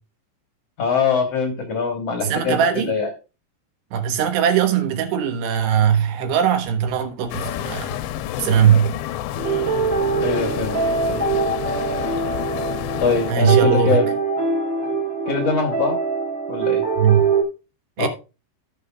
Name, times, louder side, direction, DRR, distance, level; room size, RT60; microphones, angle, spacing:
voice 1, 0.8-3.1 10.2-10.8 11.1-11.3 13.0-14.1 15.3-16.0 16.5-16.8 18.0-18.1, left 4 dB, 60° left, 1.7 m, -23 dB
voice 2, 2.2-2.9 3.9-8.0 8.4-8.9 13.3-14.0 17.0-17.3 18.0-18.1, right 8 dB, 75° right, 3.3 m, -19 dB
sound 1, 7.3-13.3, left 12 dB, 85° left, 2.8 m, -29 dB
sound 2, 9.3-17.4, right 4 dB, 35° right, 2.0 m, -23 dB
16.0 x 6.7 x 2.4 m
omnidirectional pair, 5.0 m